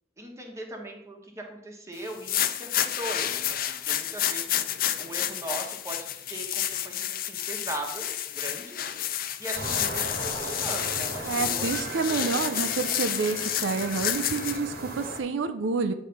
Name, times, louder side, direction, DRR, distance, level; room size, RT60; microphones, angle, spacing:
voice 1, 0.2-4.5 5.0-8.1 8.3-8.8 9.4-11.6 12.1-12.6, right 1 dB, 15° right, 1 dB, 1.2 m, -39 dB
sound 1, 2.1-14.6, left 11 dB, 50° left, 0.5 m, -30 dB
sound 2, 9.5-15.2, right 2 dB, 55° right, 1.3 m, -37 dB
voice 2, 11.2-15.9, right 4 dB, 80° right, 8 dB, 0.5 m, -28 dB
9.1 x 3.3 x 5.7 m, 0.85 s
head